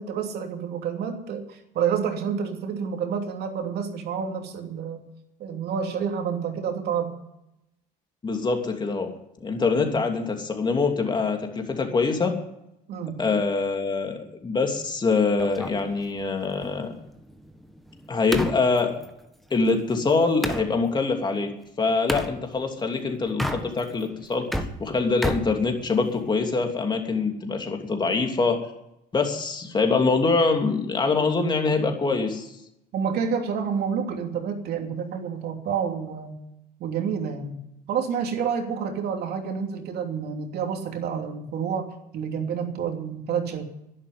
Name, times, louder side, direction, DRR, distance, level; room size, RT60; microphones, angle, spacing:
voice 1, 0.0-5.1 5.4-7.2 12.9-13.2 32.9-36.4 36.8-37.6 37.9-43.6, right 7 dB, 65° right, 4 dB, 3.0 m, -29 dB
voice 2, 8.2-9.1 9.4-12.4 13.2-16.9 18.1-18.9 19.5-28.6 29.1-32.5, left 4 dB, 25° left, 3 dB, 2.9 m, -24 dB
sound 1, 15.4-20.7 22.1-22.3 23.3-24.0 24.3-26.3, equal, ahead, 1.5 m, -32 dB
11.5 x 11.0 x 9.5 m, 0.83 s
cardioid pair, 110°, 18 cm